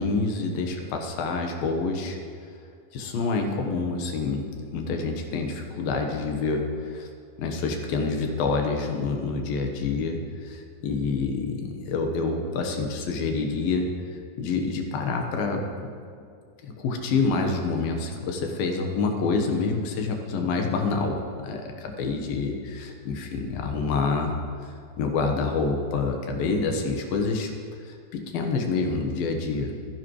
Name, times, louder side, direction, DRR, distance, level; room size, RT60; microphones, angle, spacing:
voice 1, 0.0-2.2 2.9-7.1 7.4-13.9 14.4-15.9 16.6-24.4 25.0-27.5 27.8-29.7, left 4 dB, 70° left, 3 dB, 2.9 m, -27 dB
25.5 x 11.0 x 3.2 m, 2.3 s
omnidirectional pair, 4.5 m